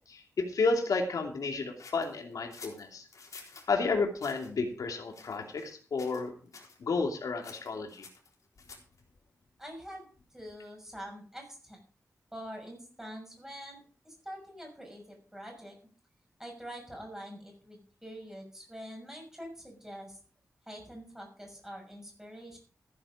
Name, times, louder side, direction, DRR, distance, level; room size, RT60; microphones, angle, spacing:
voice 1, 0.1-3.1 3.7-6.3 6.8-8.1, left 4 dB, 80° left, 2 dB, 2.8 m, -31 dB
sound 1, 1.8-3.7 4.2-4.5 5.1-5.7 6.0-6.3 6.5-6.8 7.4-9.0, left 4 dB, 65° left, 4.0 m, -51 dB
voice 2, 9.6-11.8 12.3-15.8 16.4-20.2 20.7-22.6, equal, 10° right, 1 dB, 6.1 m, -45 dB
15.0 x 9.8 x 5.0 m, 0.40 s
wide cardioid pair, 160°, 6 cm